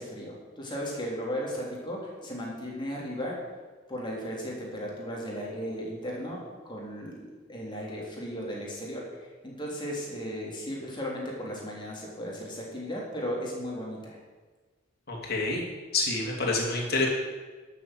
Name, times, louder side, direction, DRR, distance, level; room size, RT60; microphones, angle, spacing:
voice 1, 0.0-3.4 3.9-14.2, equal, 25° left, -3 dB, 3.2 m, -36 dB
voice 2, 15.1-15.6 15.9-17.1, left 3 dB, 50° left, -1 dB, 2.9 m, -27 dB
11.5 x 7.1 x 7.8 m, 1.4 s
head